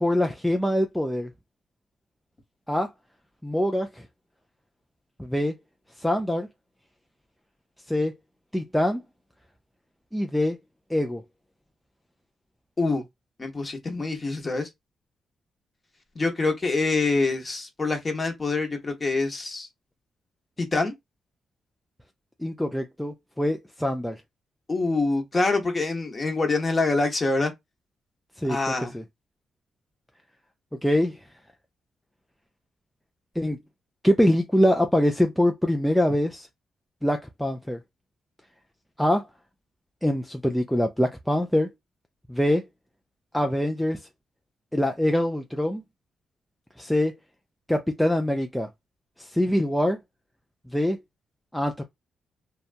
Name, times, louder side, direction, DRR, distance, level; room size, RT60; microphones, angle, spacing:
voice 1, 0.0-1.3 2.7-2.9 3.4-4.1 5.2-5.5 6.0-6.5 7.9-8.1 8.5-9.0 10.1-10.6 10.9-11.2 22.4-24.2 28.4-29.0 30.8-31.2 33.4-33.6 34.0-36.5 37.0-37.8 39.0-39.3 40.0-41.7 42.3-42.7 43.3-44.0 44.7-45.8 46.8-47.1 47.7-48.7 49.2-50.0 50.7-51.0 51.5-51.8, left 1 dB, ahead, 0.3 m, -24 dB
voice 2, 13.4-14.7 16.2-19.7 20.6-20.9 24.7-27.5 28.5-29.0, left 3 dB, 25° left, 0.9 m, -25 dB
2.8 x 2.2 x 2.4 m
cardioid pair, 115°, 0 cm